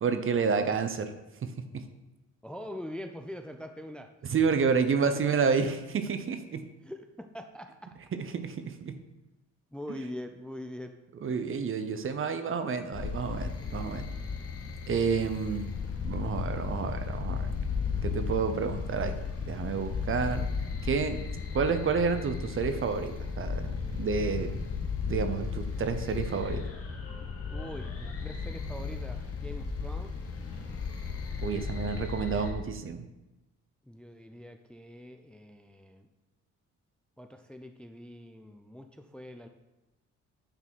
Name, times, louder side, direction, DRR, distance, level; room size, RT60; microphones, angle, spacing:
voice 1, 0.0-1.1 1.4-1.8 4.3-6.7 8.1-9.0 11.2-14.1 14.9-15.7 16.0-17.5 18.0-19.2 19.5-20.5 20.8-21.2 21.5-24.6 25.1-26.6 31.4-33.0, right 5 dB, 45° right, 9 dB, 0.8 m, -30 dB
voice 2, 2.4-4.1 6.8-8.0 9.7-10.9 27.5-30.2 31.8-32.5 33.9-36.1 37.2-39.5, left 1 dB, 5° left, 6 dB, 0.4 m, -43 dB
sound 1, 12.9-32.5, left 5 dB, 50° left, 1.4 m, -35 dB
9.0 x 4.0 x 4.6 m, 1.0 s
cardioid pair, 90°, 30 cm